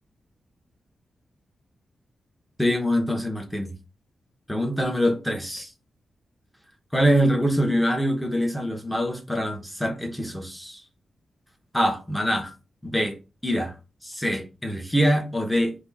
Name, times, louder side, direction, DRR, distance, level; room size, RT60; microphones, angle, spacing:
voice 1, 2.6-3.7 4.5-5.7 6.9-10.8 11.7-12.5 12.8-13.2 13.4-13.7 14.0-15.8, equal, 5° left, 1.0 m, -24 dB
4.5 x 2.8 x 4.0 m
wide cardioid pair, 140°, 0 cm